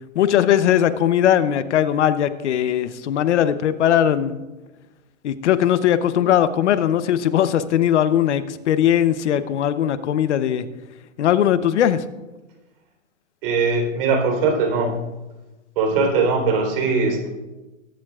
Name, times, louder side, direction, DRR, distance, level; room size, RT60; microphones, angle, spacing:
voice 1, 0.1-4.4 5.2-10.7 11.2-12.0, left 10 dB, 60° left, 12 dB, 1.0 m, -19 dB
voice 2, 13.4-15.0 15.8-17.3, right 4 dB, 45° right, 2 dB, 4.0 m, -20 dB
22.0 x 10.5 x 2.4 m, 1.1 s
hypercardioid pair, 145°, 39 cm